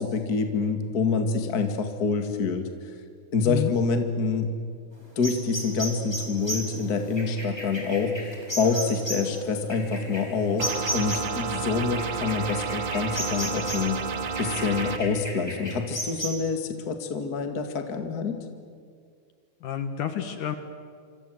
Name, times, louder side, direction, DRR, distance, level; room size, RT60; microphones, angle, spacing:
voice 1, 0.0-2.7 3.3-4.5 5.2-14.0 14.4-18.4, left 4 dB, 30° left, 6 dB, 2.1 m, -26 dB
voice 2, 3.4-3.7 19.6-20.6, left 10 dB, 65° left, 8 dB, 2.7 m, -29 dB
sound 1, 5.2-11.4 12.0-14.0 14.3-16.3, equal, 5° left, 4.8 m, -34 dB
sound 2, 10.6-15.0, right 6 dB, 75° right, 1.0 m, -31 dB
28.0 x 25.5 x 8.0 m, 2.1 s
omnidirectional pair, 4.2 m